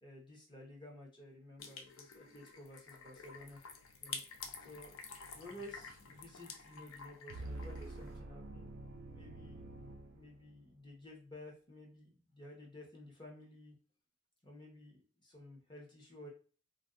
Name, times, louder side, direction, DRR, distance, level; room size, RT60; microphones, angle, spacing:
voice 1, 0.0-3.6 4.0-4.2 4.6-5.0 5.3-8.7 9.1-9.7 10.1-13.8 14.4-16.3, left 1 dB, 20° left, -2 dB, 0.9 m, -53 dB
sound 1, 1.6-8.2, left 5 dB, 65° left, 0.5 m, -50 dB
sound 2, 7.3-10.8, right 2 dB, 50° right, 0.3 m, -47 dB
2.6 x 2.2 x 3.6 m, 0.37 s
head